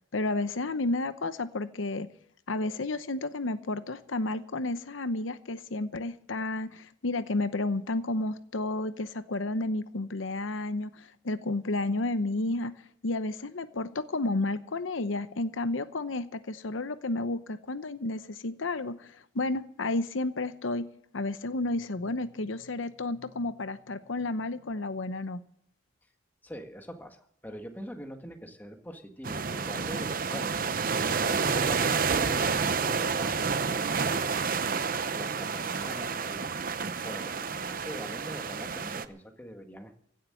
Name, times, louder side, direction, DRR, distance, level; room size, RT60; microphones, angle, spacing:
voice 1, 0.1-2.1 2.5-12.7 13.0-20.9 21.1-25.4, left 2 dB, 85° left, 12 dB, 0.8 m, -31 dB
voice 2, 26.4-36.5 37.0-40.0, equal, 10° left, 4 dB, 1.7 m, -44 dB
sound 1, 29.2-39.0, right 5 dB, 45° right, 0.8 m, -29 dB
16.0 x 7.5 x 9.9 m, 0.71 s
head